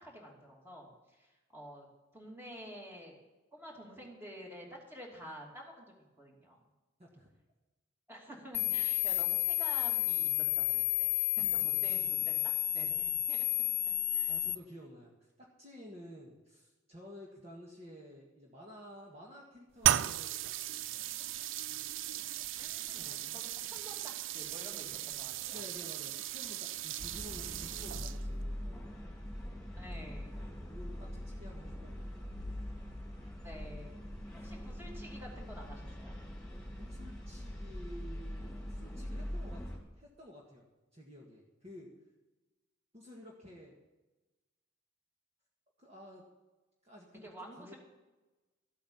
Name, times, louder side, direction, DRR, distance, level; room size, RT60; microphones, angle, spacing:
voice 1, 0.0-1.9 2.1-3.1 3.5-6.6 8.1-13.5 13.9-14.4 22.6-25.6 29.8-30.4 33.4-34.0 34.3-36.2 47.2-47.8, equal, 10° right, -2 dB, 2.8 m, -50 dB
sound 1, 8.5-14.5, left 16 dB, 35° left, 0.3 m, -31 dB
voice 2, 11.5-12.1 14.3-15.3 15.6-21.1 23.0-23.4 25.5-29.2 30.3-32.6 33.6-34.1 34.4-34.9 36.8-39.6 40.0-40.7 40.9-41.9 42.9-43.8 45.8-46.2 46.8-47.7, equal, 35° right, -3 dB, 1.6 m, -52 dB
sound 2, 19.8-28.4, right 12 dB, 70° right, 0.4 m, -36 dB
sound 3, 27.0-39.8, equal, 5° left, 3.0 m, -42 dB
14.0 x 8.4 x 5.7 m, 1.1 s
head